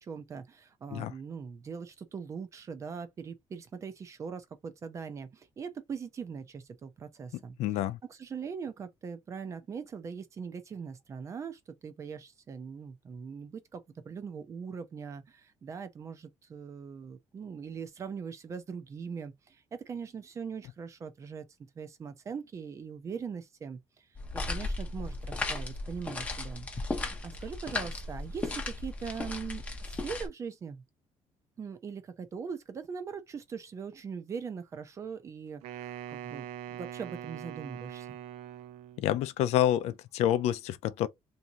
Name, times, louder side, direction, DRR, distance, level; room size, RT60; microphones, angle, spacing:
voice 1, 0.0-7.6 8.1-21.4 21.8-23.8 24.3-26.7 27.2-30.8 31.6-35.9 36.2-38.2, right 6 dB, 25° right, 0.5 m, -41 dB
voice 2, 7.6-8.0 39.0-41.1, left 12 dB, 80° left, 0.5 m, -28 dB
sound 1, 24.2-30.3, left 2 dB, 15° left, 0.7 m, -36 dB
Wind instrument woodwind instrument, 35.6-39.1, right 11 dB, 90° right, 0.4 m, -42 dB
3.5 x 2.7 x 2.7 m
cardioid pair, 180°, 11 cm